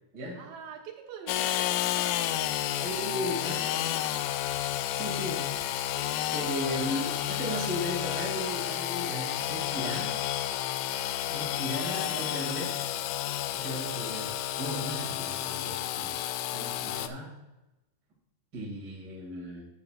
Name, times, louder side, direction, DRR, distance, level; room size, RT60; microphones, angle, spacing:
voice 1, 0.3-2.4 2.8-4.0 10.8-11.8 13.7-13.9, right 7 dB, 85° right, 0 dB, 2.0 m, -48 dB
Engine / Sawing, 1.3-17.1, left 12 dB, 85° left, 3.1 m, -31 dB
voice 2, 2.8-4.0 4.9-5.5 6.3-10.2 11.3-12.9 13.5-14.3 14.6-16.2 16.5-17.3 18.5-19.7, equal, 35° right, -4 dB, 1.7 m, -36 dB
14.5 x 7.0 x 2.4 m, 0.97 s
omnidirectional pair, 5.7 m